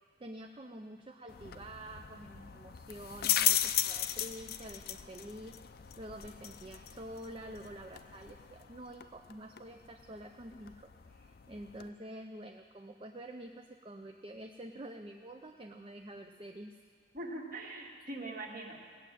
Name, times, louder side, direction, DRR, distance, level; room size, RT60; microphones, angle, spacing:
voice 1, 0.2-5.6 6.0-16.8, right 1 dB, 25° right, 4 dB, 0.5 m, -48 dB
sound 1, 1.3-11.9, left 12 dB, 50° left, 0.5 m, -37 dB
voice 2, 17.1-18.8, right 2 dB, 45° right, 0 dB, 1.9 m, -42 dB
18.0 x 7.5 x 9.1 m, 2.1 s
head